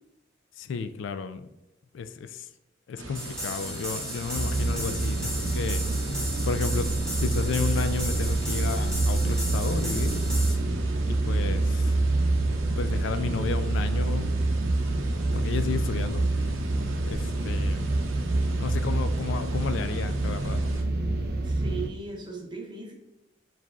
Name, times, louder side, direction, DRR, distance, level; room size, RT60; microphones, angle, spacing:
voice 1, 0.6-1.5 1.9-2.5 2.9-5.8 6.4-6.9 7.2-10.1 11.1-11.9 12.8-14.3 15.3-16.3 17.1-17.9 18.5-20.6, left 5 dB, 70° left, 11 dB, 0.3 m, -32 dB
sound 1, 3.0-20.8, right 2 dB, 90° right, 0.7 m, -41 dB
sound 2, 3.1-10.5, right 1 dB, 5° left, 1.0 m, -36 dB
sound 3, 4.3-21.9, right 2 dB, 50° right, 0.4 m, -26 dB
voice 2, 21.4-22.9, right 4 dB, 25° right, 0 dB, 0.8 m, -38 dB
4.7 x 4.0 x 2.3 m, 0.95 s
head